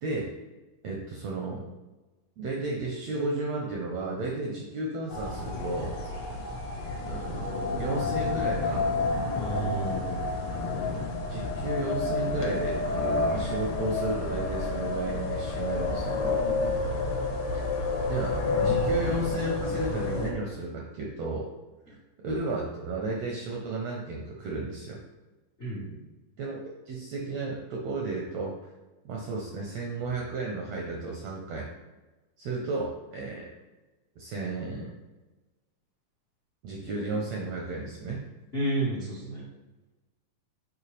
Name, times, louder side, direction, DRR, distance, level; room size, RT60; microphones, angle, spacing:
voice 1, 0.0-0.3 0.8-1.7 2.4-6.4 7.0-8.9 11.3-12.9 13.3-16.4 18.1-21.5 22.2-25.0 26.4-28.6 29.0-31.7 32.4-33.5 34.2-34.9 36.6-38.3, right 2 dB, 80° right, -1 dB, 1.5 m, -33 dB
sound 1, 5.1-20.3, left 3 dB, 65° left, 1.8 m, -29 dB
voice 2, 9.3-10.2 16.8-17.0 25.6-26.0 38.5-39.5, right 1 dB, 85° left, -6 dB, 0.5 m, -32 dB
7.4 x 4.4 x 3.3 m, 1.2 s
omnidirectional pair, 3.9 m